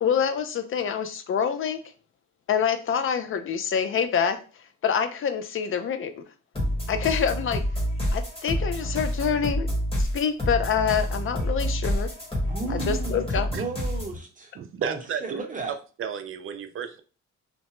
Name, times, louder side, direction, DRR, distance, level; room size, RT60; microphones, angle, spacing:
voice 1, 0.0-1.8 2.5-4.4 4.8-6.3 6.9-7.6 8.1-9.7 10.0-12.1 12.7-13.5, left 7 dB, 45° left, 0.5 m, -26 dB
sound 1, 6.5-14.2, equal, 20° left, 1.3 m, -28 dB
voice 2, 12.5-14.5 14.8-15.7, right 3 dB, 25° right, 0.8 m, -34 dB
voice 3, 14.6-15.4 16.0-17.0, right 7 dB, 45° right, 0.4 m, -32 dB
2.8 x 2.1 x 3.0 m
cardioid pair, 90°, 30 cm